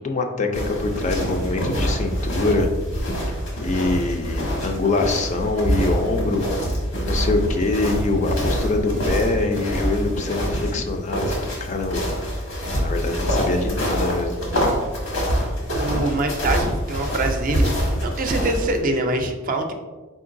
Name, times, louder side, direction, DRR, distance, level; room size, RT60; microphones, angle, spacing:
voice 1, 0.0-2.7 3.6-6.4 6.9-12.0 12.8-14.4, left 3 dB, 35° left, 4 dB, 0.4 m, -24 dB
Snow Footsteps, 0.5-18.8, equal, 80° left, 1.3 m, -25 dB
voice 2, 15.7-17.7 18.0-19.7, right 2 dB, 40° right, 5 dB, 0.4 m, -24 dB
4.4 x 3.8 x 2.5 m, 1.3 s
head